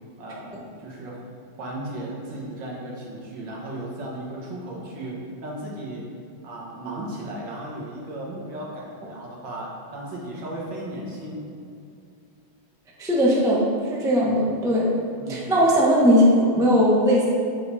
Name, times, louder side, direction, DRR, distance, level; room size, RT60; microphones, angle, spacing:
voice 1, 0.2-1.2 1.6-6.1 6.4-11.4 15.2-15.5, right 1 dB, 65° right, -4 dB, 2.0 m, -35 dB
voice 2, 13.0-14.9 15.3-17.3, equal, 5° right, -4 dB, 0.3 m, -19 dB
7.8 x 5.3 x 4.1 m, 2.5 s
omnidirectional pair, 2.2 m